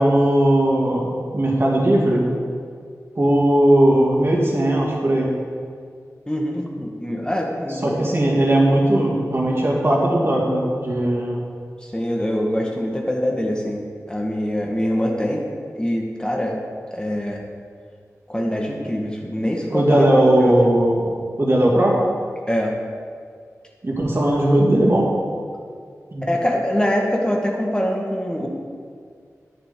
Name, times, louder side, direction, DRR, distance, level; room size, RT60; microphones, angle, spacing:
voice 1, 0.0-2.3 3.1-5.3 7.8-11.4 19.7-21.1 21.4-22.0 23.8-25.1 26.1-26.2, right 1 dB, 45° right, -3 dB, 2.4 m, -18 dB
voice 2, 6.3-8.1 11.8-15.5 15.7-16.6 16.9-17.4 18.3-20.1 20.4-20.5 22.5-22.7 26.3-28.5, equal, 15° left, -1 dB, 1.4 m, -24 dB
11.0 x 9.3 x 3.8 m, 2.1 s
wide cardioid pair, 55°, 6 cm